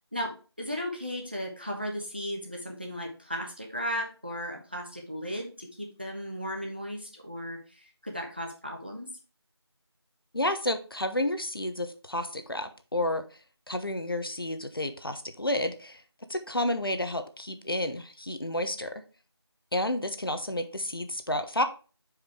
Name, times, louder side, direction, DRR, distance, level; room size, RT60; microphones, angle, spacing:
voice 1, 0.1-9.1, equal, 25° right, 2 dB, 0.8 m, -36 dB
voice 2, 10.3-13.2 13.7-16.0 16.3-19.0 19.7-21.6, left 1 dB, 60° left, 8 dB, 0.9 m, -30 dB
5.5 x 4.9 x 4.6 m, 0.34 s
figure-of-eight pair, 175°, 14 cm